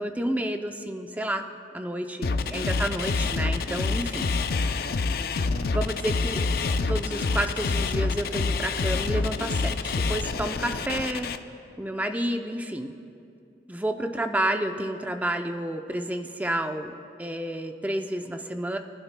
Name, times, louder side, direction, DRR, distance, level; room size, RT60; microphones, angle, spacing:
voice 1, 0.0-1.5 1.7-4.3 5.7-6.5 6.9-11.4 11.8-12.9 13.7-16.9 17.2-18.8, right 1 dB, 10° right, 5 dB, 0.5 m, -30 dB
sound 1, 2.2-11.4, left 4 dB, 55° left, 0.5 m, -27 dB
24.5 x 11.5 x 2.2 m, 2.5 s
head